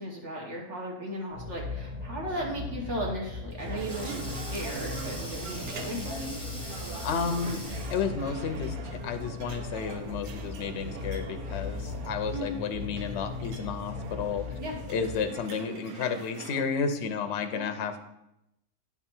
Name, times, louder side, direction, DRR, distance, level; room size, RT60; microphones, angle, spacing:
voice 1, 0.0-6.4 7.8-7.9 12.3-12.6 14.6-14.8 17.5-17.7, equal, 55° right, -2 dB, 1.3 m, -36 dB
sound 1, 1.3-15.2, left 3 dB, 30° right, 1.7 m, -38 dB
Sink (filling or washing), 3.1-8.2, left 1 dB, 5° left, 0.8 m, -43 dB
sound 2, 3.6-16.6, right 5 dB, 80° right, 1.2 m, -43 dB
voice 2, 7.0-7.6 7.9-14.5 14.9-18.0, left 6 dB, 60° left, 7 dB, 0.8 m, -32 dB
10.0 x 3.6 x 4.4 m, 0.84 s
omnidirectional pair, 1.6 m